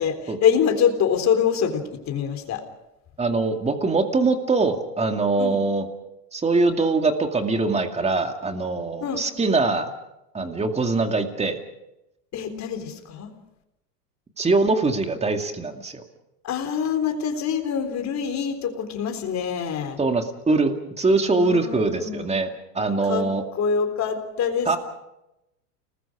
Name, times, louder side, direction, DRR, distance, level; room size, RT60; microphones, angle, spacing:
voice 1, 0.4-2.6 5.4-5.6 9.0-9.2 12.3-13.3 16.4-20.0 21.2-22.4 23.0-23.3 23.5-24.8, left 7 dB, 35° left, 6 dB, 3.8 m, -25 dB
voice 2, 3.2-5.8 6.3-9.9 10.3-11.6 14.4-16.0 20.0-22.5 22.7-23.4 24.7-24.8, right 3 dB, 15° right, 6 dB, 2.3 m, -22 dB
30.0 x 20.0 x 5.0 m, 0.90 s
supercardioid pair, 115°, 47 cm